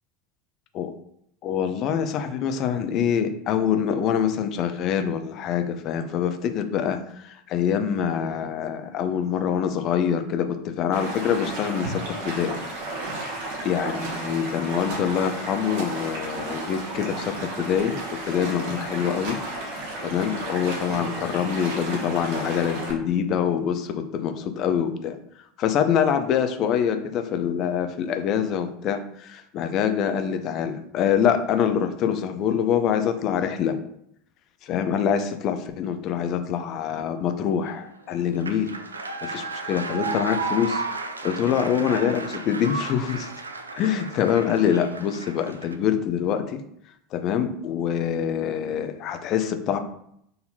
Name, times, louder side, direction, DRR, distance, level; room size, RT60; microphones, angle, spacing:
voice 1, 1.4-7.0 7.2-12.5 13.7-19.4 20.0-25.2 25.6-33.8 34.6-38.7 39.2-40.8 41.2-43.3 43.8-46.6 47.1-49.8, left 8 dB, 45° left, 8 dB, 0.5 m, -25 dB
Stream, 10.9-22.9, right 2 dB, 60° right, 1.2 m, -33 dB
sound 1, 37.7-45.8, right 3 dB, 85° right, 0.4 m, -33 dB
4.1 x 4.0 x 2.8 m, 0.72 s
figure-of-eight pair, 75°, 0 cm